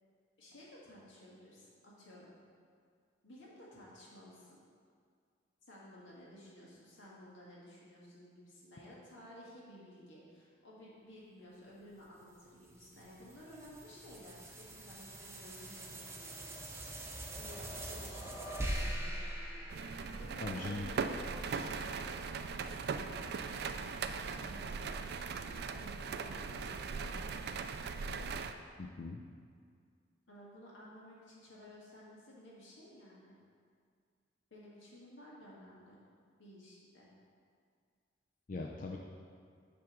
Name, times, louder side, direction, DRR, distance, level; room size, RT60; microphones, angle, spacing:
voice 1, 0.4-2.4 3.2-4.6 5.6-16.4 17.3-19.7 20.2-27.8 30.3-33.4 34.5-36.0 36.4-37.1, left 1 dB, 80° left, -5 dB, 1.9 m, -55 dB
sound 1, 12.2-20.8, right 1 dB, 15° right, 0.6 m, -43 dB
sound 2, 19.7-28.5, right 5 dB, 55° right, 0.3 m, -39 dB
voice 2, 20.4-20.9 28.8-29.2 38.5-39.0, left 3 dB, 45° left, 0 dB, 0.4 m, -40 dB
7.6 x 3.6 x 6.2 m, 2.1 s
head